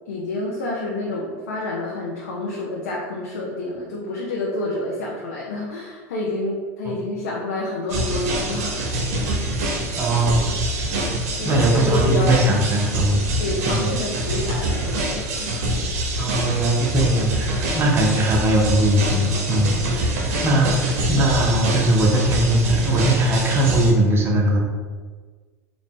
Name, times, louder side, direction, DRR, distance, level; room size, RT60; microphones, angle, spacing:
voice 1, 0.1-9.1 11.4-12.4 13.4-15.5, left 2 dB, 85° left, -3 dB, 0.6 m, -28 dB
sound 1, 7.9-23.9, right 1 dB, 70° right, 0.8 m, -25 dB
voice 2, 10.0-10.5 11.4-13.3 13.7-13.9 16.2-20.1 20.4-24.6, right 1 dB, 30° right, -1 dB, 1.0 m, -20 dB
3.9 x 2.4 x 3.7 m, 1.4 s
hypercardioid pair, 95°, 8 cm